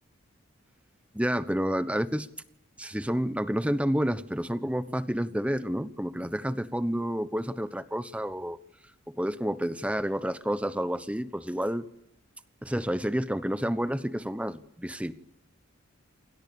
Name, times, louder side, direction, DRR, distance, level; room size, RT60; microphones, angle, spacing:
voice 1, 1.1-2.3 2.8-8.6 9.1-11.9 12.6-15.1, equal, 5° right, 13 dB, 1.0 m, -29 dB
28.5 x 24.0 x 7.0 m, 0.84 s
head